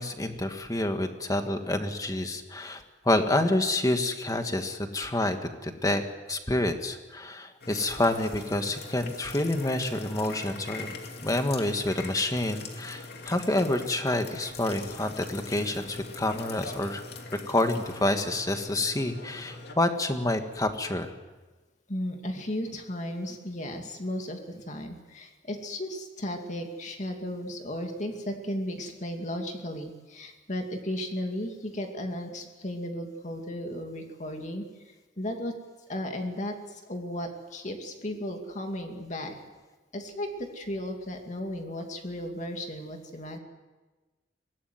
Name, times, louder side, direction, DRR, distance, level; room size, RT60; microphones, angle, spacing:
voice 1, 0.0-6.0 6.3-10.9 11.2-17.0 17.5-21.1, left 1 dB, 20° left, 6 dB, 1.7 m, -28 dB
sound 1, 7.6-19.8, left 3 dB, 60° left, 2.7 m, -42 dB
voice 2, 21.9-35.6 35.9-39.4 39.9-43.4, left 1 dB, 40° left, 3 dB, 2.5 m, -35 dB
23.5 x 18.0 x 9.5 m, 1.2 s
head